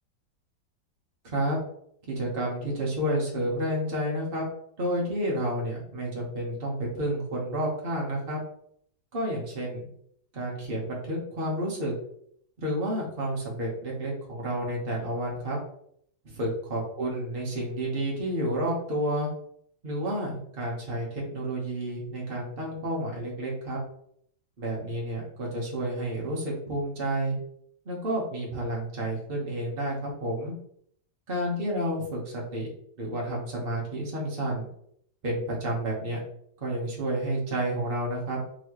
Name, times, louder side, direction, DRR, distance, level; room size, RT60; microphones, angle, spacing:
voice 1, 1.2-1.6 2.1-4.5 4.8-8.4 9.1-9.8 10.3-11.9 12.6-15.6 16.2-19.3 19.8-23.8 24.6-27.4 27.8-30.5 31.3-32.7 33.0-34.7 35.2-36.2 36.6-38.4, right 1 dB, 35° right, -3 dB, 1.3 m, -30 dB
4.6 x 3.2 x 3.0 m, 0.68 s
omnidirectional pair, 1.9 m